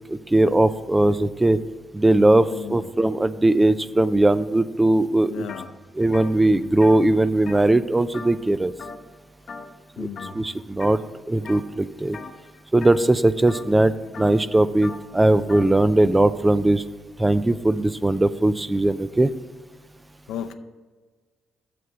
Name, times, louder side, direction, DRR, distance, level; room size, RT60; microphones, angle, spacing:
voice 1, 0.1-1.6 1.9-5.5 6.0-8.7 10.0-10.1 10.3-11.0 11.3-12.2 12.7-16.8 17.2-19.3, right 1 dB, 15° right, 15 dB, 0.4 m, -19 dB
voice 2, 2.5-2.9 5.3-5.7 10.0-10.5 20.3-20.5, left 9 dB, 85° left, 9 dB, 0.6 m, -34 dB
sound 1, 5.5-5.7 6.0-8.5 8.8-9.2 9.5-9.8 10.2-11.0 11.5-11.8 12.1-15.7, left 4 dB, 50° left, 0.9 m, -40 dB
7.7 x 6.7 x 4.8 m, 1.4 s
cardioid pair, 90°, 0 cm